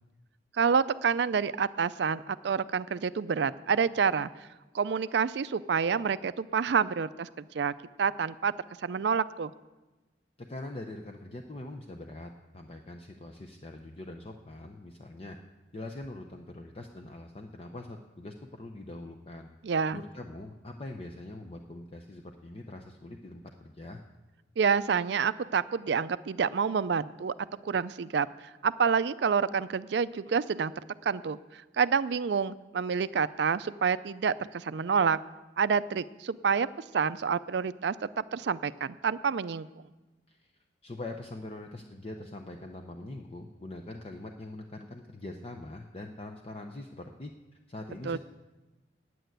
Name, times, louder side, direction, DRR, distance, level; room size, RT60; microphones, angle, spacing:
voice 1, 0.6-4.3 4.7-7.7 8.0-8.5 8.8-9.5 19.6-20.0 24.6-27.3 27.6-28.3 28.6-30.7 31.0-35.2 35.6-36.7 36.9-37.9 38.3-39.7 48.1-48.2, right 6 dB, 65° right, 15 dB, 0.4 m, -28 dB
voice 2, 10.4-15.4 15.7-19.5 19.9-24.0 40.3-40.5 40.8-48.2, left 2 dB, 30° left, 3 dB, 0.6 m, -43 dB
9.2 x 8.9 x 9.1 m, 1.1 s
head